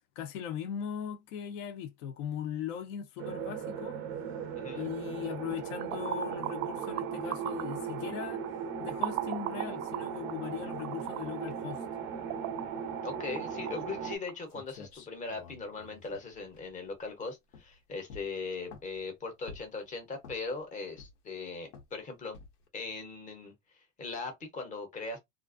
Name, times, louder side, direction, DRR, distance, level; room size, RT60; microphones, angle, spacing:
voice 1, 0.2-4.0 4.7-8.4 8.8-11.8, left 9 dB, 60° left, 0.7 m, -39 dB
sound 1, 3.2-14.2, right 7 dB, 30° right, 0.4 m, -38 dB
voice 2, 4.6-4.9 13.0-22.4 22.7-25.2, left 4 dB, 20° left, 0.8 m, -39 dB
sound 2, 5.5-14.5, right 15 dB, 85° right, 0.5 m, -41 dB
sound 3, 14.2-14.3 14.5-17.1 17.5-17.8 18.1-19.0 19.5-19.8 20.2-20.6 21.0-21.4 21.7-22.0 22.3-22.7, left 4 dB, 85° left, 1.0 m, -50 dB
2.4 x 2.1 x 2.4 m
supercardioid pair, 135°, 42 cm